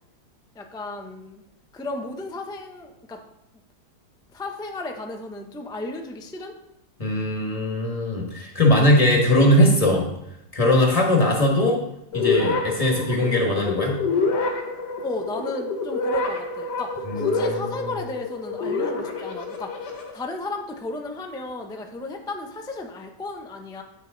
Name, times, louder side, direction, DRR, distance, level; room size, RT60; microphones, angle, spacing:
voice 1, 0.5-1.4 1.7-3.2 4.3-6.5 15.0-23.8, left 2 dB, 5° left, 3 dB, 0.3 m, -34 dB
voice 2, 7.0-10.1 10.5-11.8 12.1-14.0 17.0-17.9, left 1 dB, 20° left, 0 dB, 1.7 m, -20 dB
sound 1, 12.1-20.1, left 3 dB, 80° left, 1.8 m, -27 dB
9.4 x 6.2 x 3.9 m, 0.82 s
omnidirectional pair, 1.8 m